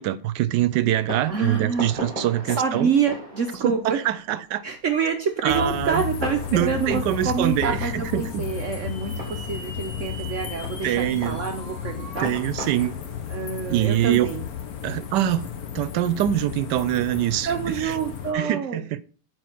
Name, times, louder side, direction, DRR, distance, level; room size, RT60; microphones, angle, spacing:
voice 1, 0.0-2.9 3.6-4.6 5.4-6.0 6.5-8.4 10.8-11.4 12.2-13.0 13.7-14.3 14.8-15.5 15.7-17.5 17.8-18.0 18.3-19.1, right 12 dB, 85° right, 1.2 m, -24 dB
Fireworks, 0.8-15.0, equal, 20° right, 2.6 m, -40 dB
voice 2, 1.3-1.9 2.4-4.0 4.6-12.3 13.3-14.4 17.4-18.8, right 6 dB, 55° right, 0.9 m, -27 dB
sound 1, 5.5-18.3, left 8 dB, 60° left, 1.3 m, -33 dB
sound 2, 6.6-12.3, right 1 dB, 80° left, 3.0 m, -44 dB
7.0 x 4.6 x 5.7 m
omnidirectional pair, 1.8 m